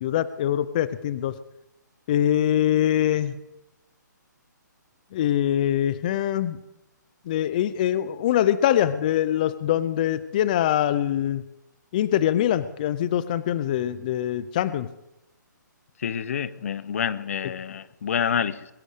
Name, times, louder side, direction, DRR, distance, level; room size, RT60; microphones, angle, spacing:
voice 1, 0.0-1.4 2.1-3.4 5.1-6.6 7.3-11.4 11.9-14.9, left 11 dB, 25° left, 16 dB, 0.5 m, -23 dB
voice 2, 16.0-18.7, left 8 dB, 45° left, 16 dB, 0.8 m, -28 dB
21.5 x 7.6 x 8.2 m, 0.92 s
hypercardioid pair, 165°, 10 cm